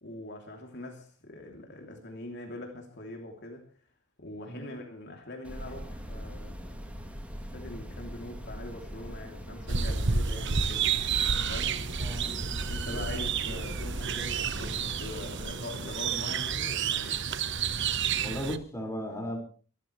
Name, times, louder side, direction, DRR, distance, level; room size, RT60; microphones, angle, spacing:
voice 1, 0.0-3.7 4.2-6.8 7.5-10.9 11.5-11.8 12.7-17.2, left 1 dB, 55° left, 3.1 m, -42 dB
brown noise, 5.4-15.4, equal, 5° right, 2.8 m, -41 dB
sound 1, 9.7-18.6, right 6 dB, 55° right, 1.2 m, -30 dB
voice 2, 18.2-19.4, equal, 15° left, 5.2 m, -35 dB
24.5 x 14.0 x 3.3 m
head